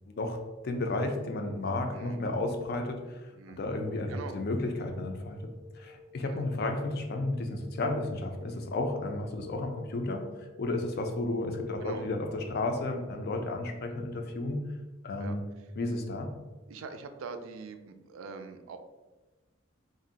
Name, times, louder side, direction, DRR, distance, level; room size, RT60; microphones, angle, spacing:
voice 1, 0.1-0.4 0.6-5.4 5.7-14.7 15.0-15.4 15.8-16.3, left 2 dB, 50° left, 4 dB, 0.4 m, -33 dB
voice 2, 3.3-3.6 4.1-4.4 6.3-6.4 11.8-12.1 15.2-15.4 16.7-18.8, right 5 dB, 75° right, 7 dB, 0.3 m, -43 dB
sound 1, 5.3-10.8, left 3 dB, 5° left, 0.6 m, -54 dB
2.5 x 2.1 x 3.8 m, 1.1 s
head